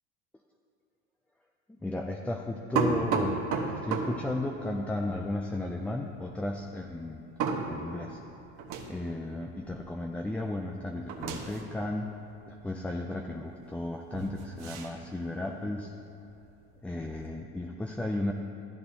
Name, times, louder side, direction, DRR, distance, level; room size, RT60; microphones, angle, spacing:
voice 1, 1.7-7.3 7.7-8.2 8.9-12.2 12.5-15.9 16.8-18.3, left 2 dB, 5° left, 2 dB, 0.3 m, -34 dB
sound 1, 2.7-10.2 10.5-13.1 13.5-13.8 14.1-17.3, right 5 dB, 55° right, 1.3 m, -35 dB
13.5 x 13.0 x 2.8 m, 2.8 s
supercardioid pair, 115°, 36 cm